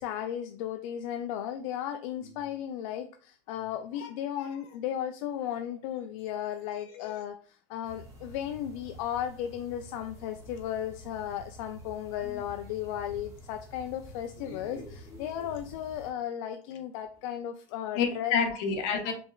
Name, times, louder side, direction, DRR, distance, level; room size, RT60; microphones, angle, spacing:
voice 1, 0.0-18.3, left 10 dB, 75° left, 7 dB, 0.4 m, -35 dB
sound 1, 7.8-16.1, right 1 dB, 15° right, 1.8 m, -50 dB
voice 2, 14.4-15.5 17.9-19.1, left 6 dB, 55° left, 3 dB, 1.0 m, -31 dB
5.2 x 3.1 x 2.4 m, 0.42 s
supercardioid pair, 155°, 17 cm